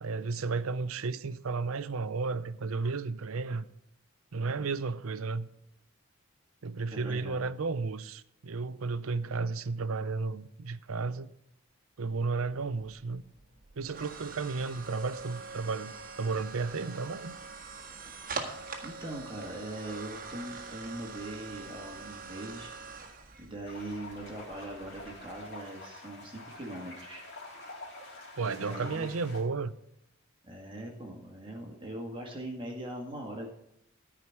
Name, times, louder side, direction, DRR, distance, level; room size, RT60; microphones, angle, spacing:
voice 1, 0.0-3.7 4.3-5.5 6.6-11.3 12.0-13.2 13.8-17.4 28.4-29.8, right 4 dB, 75° right, 0.6 m, -33 dB
voice 2, 6.9-7.5 18.0-18.1 18.8-22.7 23.4-27.3 28.4-29.1 30.4-33.5, right 1 dB, 25° right, 1.8 m, -41 dB
sound 1, 12.8-25.4, right 4 dB, 40° right, 1.6 m, -44 dB
sound 2, 23.6-29.4, left 2 dB, 50° left, 3.3 m, -47 dB
13.5 x 5.1 x 7.2 m
head